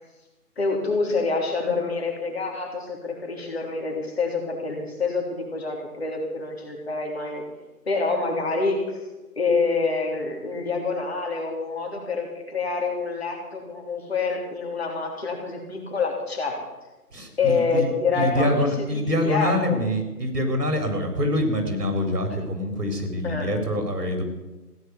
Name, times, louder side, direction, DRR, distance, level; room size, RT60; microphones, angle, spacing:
voice 1, 0.6-7.4 7.9-9.0 9.4-16.6 17.4-19.8 23.2-23.5, left 4 dB, 40° left, 1 dB, 3.6 m, -27 dB
voice 2, 17.1-17.9 18.1-24.2, left 1 dB, 80° right, 5 dB, 4.4 m, -25 dB
16.0 x 9.5 x 8.3 m, 1.1 s
hypercardioid pair, 175°, 47 cm